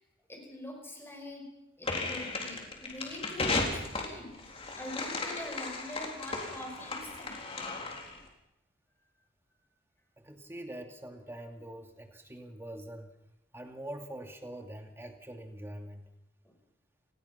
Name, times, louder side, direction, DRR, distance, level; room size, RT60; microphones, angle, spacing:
voice 1, 0.3-1.5 1.8-4.4 4.7-7.4 16.4-16.5, left 1 dB, 15° left, 2 dB, 5.0 m, -43 dB
sound 1, 1.8-8.2, left 3 dB, 30° left, 4.1 m, -35 dB
voice 2, 10.2-13.1 13.5-16.1, right 1 dB, 15° right, 3 dB, 2.6 m, -44 dB
29.0 x 19.5 x 5.8 m, 0.88 s
head